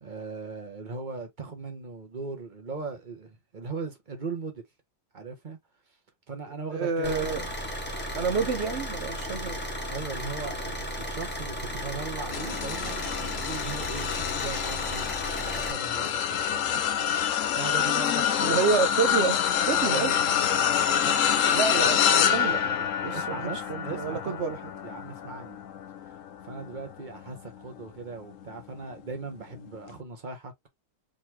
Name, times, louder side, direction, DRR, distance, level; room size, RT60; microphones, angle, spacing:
voice 1, 0.0-4.6 5.1-5.6 6.3-7.5 8.2-8.4 9.9-16.8 17.5-18.7 19.8-21.6 23.1-24.4 24.8-25.6 26.0-26.1 26.4-30.5, right 4 dB, 25° right, 1.2 m, -39 dB
voice 2, 6.7-7.4 8.1-9.6 18.4-20.1 21.5-24.6, right 5 dB, 75° right, 0.6 m, -29 dB
Car / Idling, 7.0-15.7, equal, 5° left, 1.0 m, -35 dB
sound 1, 12.3-27.8 28.3-28.6 29.8-29.9, left 9 dB, 70° left, 0.7 m, -27 dB
4.3 x 4.1 x 2.9 m
omnidirectional pair, 2.2 m